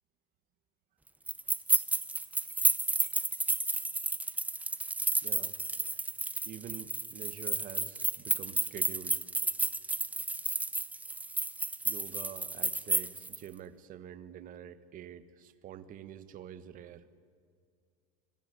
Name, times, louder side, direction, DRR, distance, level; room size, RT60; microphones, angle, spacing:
sound 1, 1.3-13.4, right 2 dB, 10° right, 0.9 m, -32 dB
voice 1, 5.2-5.5 6.4-9.3 11.8-17.1, right 10 dB, 45° right, 12 dB, 1.6 m, -46 dB
26.5 x 25.5 x 8.4 m, 2.2 s
supercardioid pair, 110°, 19 cm